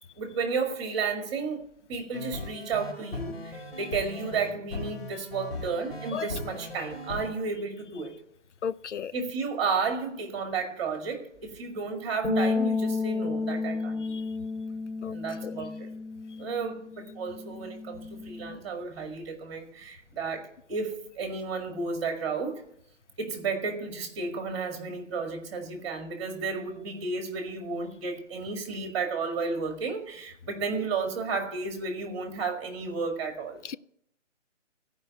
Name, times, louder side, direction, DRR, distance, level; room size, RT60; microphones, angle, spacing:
voice 1, 0.2-1.6 1.9-8.1 9.1-14.2 15.1-15.9 16.4-22.6 23.2-33.6, right 4 dB, 25° right, 2.1 m, -32 dB
sound 1, 2.1-7.3, left 2 dB, 55° left, 4.1 m, -38 dB
voice 2, 8.6-9.1 14.1-14.2 15.0-15.2 15.4-15.6 33.6-33.8, left 7 dB, 70° left, 0.6 m, -34 dB
sound 2, 12.2-18.5, left 3 dB, 90° left, 3.4 m, -32 dB
14.0 x 5.3 x 9.5 m
figure-of-eight pair, 155°, 37 cm